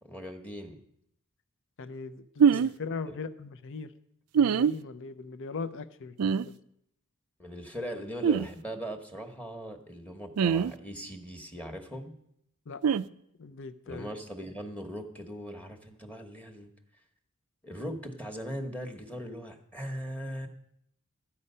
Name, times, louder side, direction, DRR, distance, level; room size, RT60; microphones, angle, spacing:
voice 1, 0.0-0.8 2.5-2.6 3.1-3.2 7.4-12.1 13.8-16.7 17.6-20.5, equal, 5° left, 4 dB, 1.1 m, -39 dB
voice 2, 1.8-3.9 4.4-6.5 12.7-12.8 13.4-14.1, left 4 dB, 60° left, 13 dB, 0.6 m, -39 dB
sound 1, 2.4-2.7 4.3-4.7 6.2-6.4 8.2-8.5 10.4-10.7 12.8-13.0, right 7 dB, 90° right, 0.4 m, -22 dB
13.0 x 8.5 x 5.5 m, 0.74 s
head